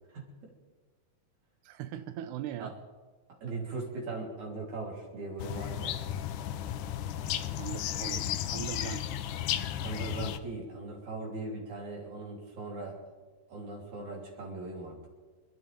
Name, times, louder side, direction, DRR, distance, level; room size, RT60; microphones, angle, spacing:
voice 1, 0.1-0.5 2.6-2.7 3.4-6.0 9.8-13.0 13.5-15.0, right 3 dB, 60° right, -2 dB, 4.8 m, -39 dB
voice 2, 1.6-2.7 7.6-9.0, right 11 dB, 75° right, 9 dB, 1.9 m, -40 dB
sound 1, 5.4-10.4, left 11 dB, 75° left, 2.1 m, -34 dB
28.5 x 13.5 x 3.6 m, 1.4 s
omnidirectional pair, 3.9 m